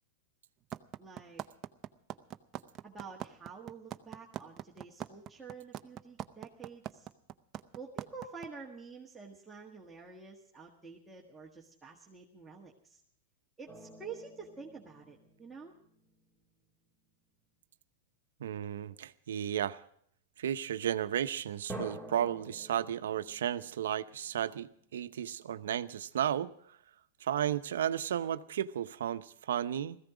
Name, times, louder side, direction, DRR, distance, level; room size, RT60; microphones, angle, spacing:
sound 1, 0.7-8.5, right 11 dB, 30° right, 0.7 m, -41 dB
voice 1, 1.0-1.4 2.8-7.1 7.7-13.0 13.6-15.7, right 5 dB, 10° right, -3 dB, 1.7 m, -48 dB
sound 2, 13.7-16.8 21.7-25.3, right 2 dB, 10° left, 3.4 m, -49 dB
voice 2, 18.4-19.8 20.4-26.5 27.2-30.0, right 10 dB, 80° right, 11 dB, 0.8 m, -33 dB
17.0 x 15.0 x 5.0 m, 0.65 s
hypercardioid pair, 130°, 0 cm